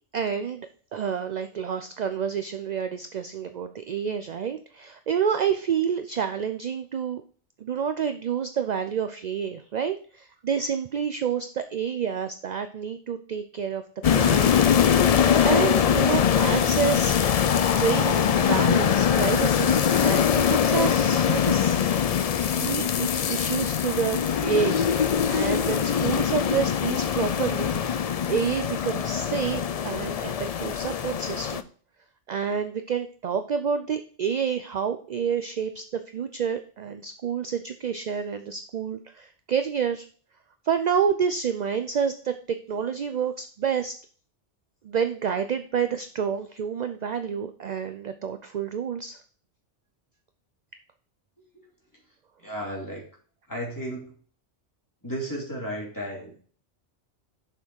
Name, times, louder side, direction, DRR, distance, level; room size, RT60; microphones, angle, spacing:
voice 1, 0.1-7.2 7.6-13.8 14.1-14.6 15.4-17.2 17.8-21.9 22.6-31.6 32.3-40.0 40.6-43.9 44.8-49.2, right 7 dB, 50° right, 9 dB, 0.5 m, -29 dB
sound 1, 14.0-31.6, left 8 dB, 65° left, 0.3 m, -22 dB
voice 2, 52.4-53.0 53.5-54.1 55.0-56.4, equal, 15° left, -3 dB, 2.8 m, -34 dB
6.7 x 5.9 x 4.6 m, 0.43 s
omnidirectional pair, 1.2 m